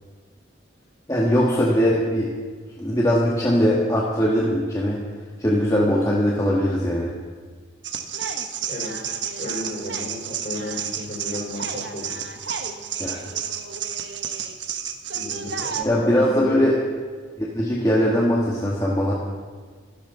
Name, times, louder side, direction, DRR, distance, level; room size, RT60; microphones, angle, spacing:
voice 1, 1.1-2.3 2.8-5.0 5.4-7.1 13.0-13.2 15.9-16.8 17.4-19.1, equal, 20° left, -5 dB, 1.9 m, -20 dB
sound 1, 7.8-15.8, right 7 dB, 65° right, 1.3 m, -31 dB
voice 2, 8.7-12.2 15.1-16.7, left 1 dB, 40° left, -1 dB, 4.4 m, -33 dB
25.5 x 13.0 x 4.1 m, 1.5 s
head